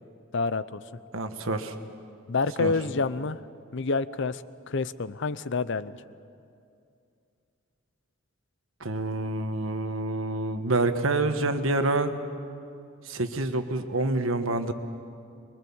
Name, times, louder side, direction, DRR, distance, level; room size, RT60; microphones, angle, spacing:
voice 1, 0.3-0.8 2.3-3.4 3.7-5.9, left 4 dB, 60° left, 16 dB, 0.6 m, -28 dB
voice 2, 1.1-1.7 2.6-2.7 8.8-12.1 13.0-14.7, right 2 dB, 75° right, 8 dB, 1.4 m, -27 dB
24.0 x 23.0 x 7.2 m, 2.5 s
head